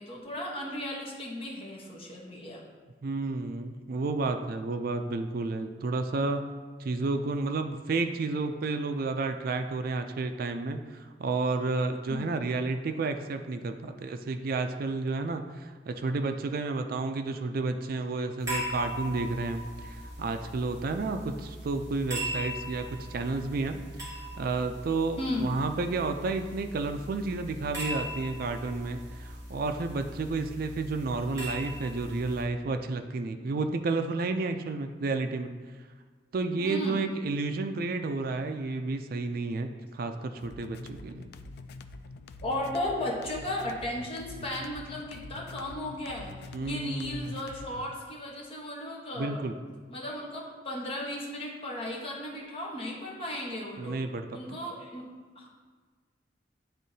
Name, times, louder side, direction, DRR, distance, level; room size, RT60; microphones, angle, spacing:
voice 1, 0.0-2.6 12.1-12.3 25.2-25.5 36.6-37.1 42.4-49.4 49.9-54.0 54.3-55.0 55.3-55.5, left 1 dB, 30° left, -3 dB, 1.1 m, -35 dB
voice 2, 3.0-6.4 6.8-35.5 36.3-41.3 46.5-47.4 49.1-49.5 53.8-54.6, right 3 dB, 55° right, 7 dB, 0.4 m, -31 dB
sound 1, 18.4-32.4, equal, 20° right, 1.8 m, -39 dB
sound 2, 40.4-47.9, left 3 dB, 60° left, 0.3 m, -45 dB
10.0 x 3.6 x 2.7 m, 1.5 s
head